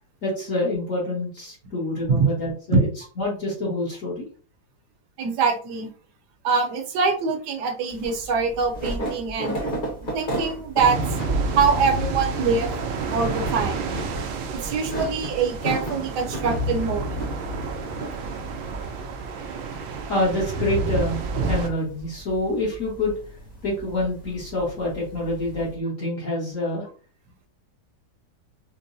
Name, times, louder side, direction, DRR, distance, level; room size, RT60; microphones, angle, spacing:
voice 1, 0.2-2.9 3.2-4.3 20.1-21.2 21.5-23.2 23.6-26.9, left 1 dB, 50° left, -5 dB, 1.3 m, -26 dB
voice 2, 5.2-5.9 6.4-9.6 10.1-11.0 11.6-12.7 13.1-13.8 14.5-17.2, right 5 dB, 70° right, 4 dB, 1.3 m, -23 dB
sound 1, 7.9-25.7, right 1 dB, 30° left, 1.1 m, -36 dB
sound 2, 10.8-21.7, right 3 dB, 85° right, 1.3 m, -29 dB
4.6 x 2.1 x 2.6 m, 0.41 s
omnidirectional pair, 2.0 m